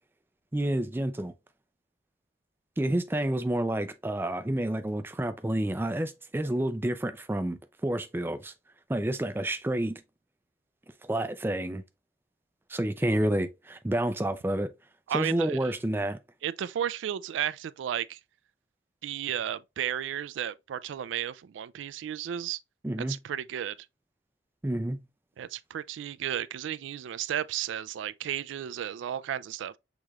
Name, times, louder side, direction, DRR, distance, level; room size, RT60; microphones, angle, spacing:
voice 1, 0.5-1.3 2.8-8.5 8.9-10.0 11.1-11.8 12.7-14.7 15.1-16.2 22.8-23.2 24.6-25.0, right 1 dB, 10° right, 0.3 m, -29 dB
voice 2, 15.1-15.6 16.4-18.2 19.0-22.6 23.1-23.7 25.4-29.8, right 10 dB, 90° right, 0.3 m, -33 dB
6.5 x 3.0 x 2.3 m
head